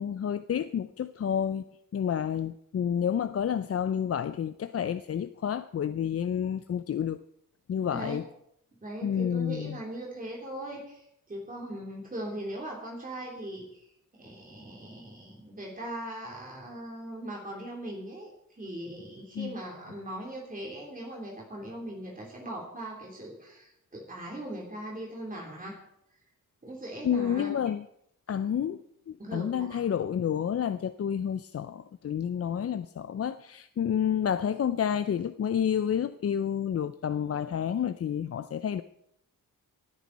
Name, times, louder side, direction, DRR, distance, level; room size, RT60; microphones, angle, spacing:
voice 1, 0.0-1.6 1.9-7.2 7.7-8.2 9.0-9.8 19.4-19.5 27.0-27.8 28.3-28.8 29.1-38.8, left 8 dB, 45° left, 12 dB, 0.5 m, -29 dB
voice 2, 8.8-13.9 14.2-18.3 18.6-25.8 26.6-27.5 29.2-29.8, right 1 dB, 25° right, -2 dB, 3.4 m, -40 dB
27.0 x 9.5 x 4.2 m, 0.76 s
wide cardioid pair, 120°, 36 cm